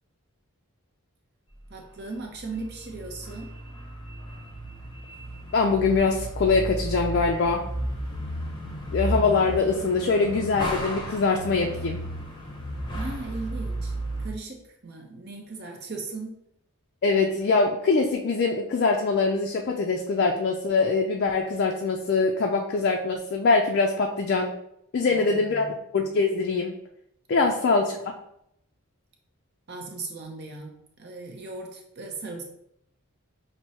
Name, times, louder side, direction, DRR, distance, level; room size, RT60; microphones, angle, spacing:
voice 1, 1.7-3.5 12.9-13.9 14.2-16.4 25.1-25.7 27.4-27.5 29.7-32.4, right 3 dB, 50° right, 2 dB, 0.6 m, -38 dB
sound 1, 2.1-14.3, equal, 20° left, 0.8 m, -34 dB
voice 2, 5.5-7.6 8.9-12.0 17.0-24.5 24.9-25.7 25.9-26.8 27.3-28.0, left 4 dB, 45° left, 1 dB, 0.3 m, -23 dB
6.0 x 2.0 x 2.8 m, 0.76 s
head